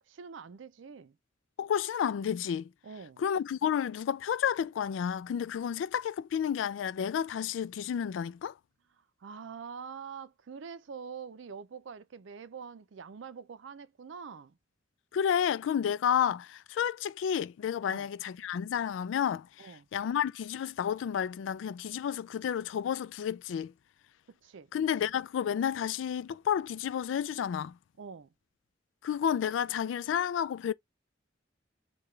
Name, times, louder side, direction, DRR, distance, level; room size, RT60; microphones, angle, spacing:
voice 1, 0.1-1.2 2.8-3.2 9.2-14.6 17.8-18.1 19.6-19.9 24.4-24.7 28.0-28.3, right 6 dB, 85° right, 0.5 m, -45 dB
voice 2, 1.6-2.7 3.2-8.5 15.1-23.7 24.7-27.8 29.0-30.7, left 8 dB, 85° left, 0.3 m, -31 dB
6.6 x 2.3 x 3.1 m
head